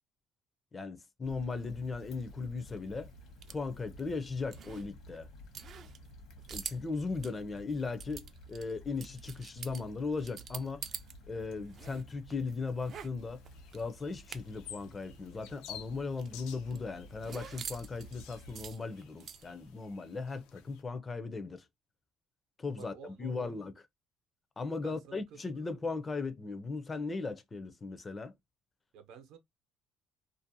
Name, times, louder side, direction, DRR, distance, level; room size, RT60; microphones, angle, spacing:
voice 1, 0.7-3.1 3.5-5.3 6.5-10.9 11.3-13.4 13.7-21.7 22.6-23.7 24.6-28.3, left 4 dB, 25° left, 0.4 m, -37 dB
Stream / Traffic noise roadway noise / Trickle dribble, 1.2-18.7, left 1 dB, 65° left, 0.9 m, -53 dB
sound 1, 1.7-11.1 11.4-14.8 15.0-15.1 15.4-19.7, right 7 dB, 45° right, 0.3 m, -47 dB
sound 2, 13.2-20.8, left 10 dB, 85° left, 0.4 m, -53 dB
voice 2, 22.7-23.5 24.8-25.7 28.9-29.4, right 7 dB, 75° right, 0.7 m, -52 dB
2.5 x 2.1 x 2.6 m
cardioid pair, 120°, 0 cm